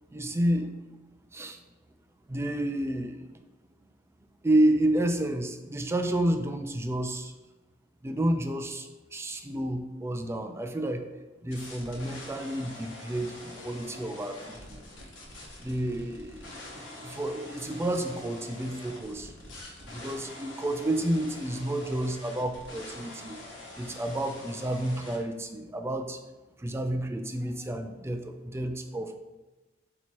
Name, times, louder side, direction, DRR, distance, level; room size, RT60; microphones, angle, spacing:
voice 1, 0.1-0.7 1.3-1.6 2.3-3.2 4.4-7.3 8.0-11.1 11.4-14.8 15.6-19.3 19.9-23.4 23.8-26.2 26.6-29.2, right 1 dB, 15° right, 6 dB, 0.3 m, -30 dB
sound 1, 11.5-25.2, left 2 dB, 70° left, 1.0 m, -45 dB
4.1 x 2.9 x 4.4 m, 1.2 s
head